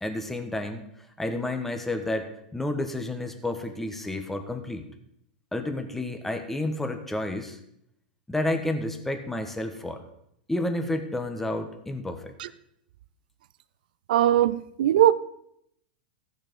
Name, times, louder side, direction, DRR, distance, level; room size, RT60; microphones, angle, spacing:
voice 1, 0.0-4.9 5.5-7.6 8.3-10.0 10.5-12.3, left 1 dB, 5° left, 6 dB, 1.2 m, -30 dB
voice 2, 14.1-15.1, right 12 dB, 75° right, 16 dB, 0.5 m, -20 dB
14.5 x 6.6 x 5.3 m, 0.74 s
hypercardioid pair, 125°, 5 cm